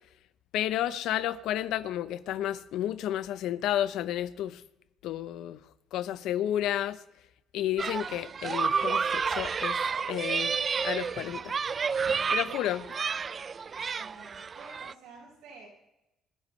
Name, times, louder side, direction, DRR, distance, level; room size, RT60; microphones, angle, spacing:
voice 1, 0.5-4.6 5.0-5.6 5.9-7.0 7.5-9.8 10.0-10.5 10.8-11.6 12.3-12.8, left 12 dB, 80° left, 0.8 m, -31 dB
sound 1, 7.8-14.9, right 5 dB, 40° right, 0.4 m, -30 dB
voice 2, 14.0-15.7, right 4 dB, 85° right, 6.0 m, -50 dB
26.5 x 10.5 x 3.3 m
supercardioid pair, 80°, 0 cm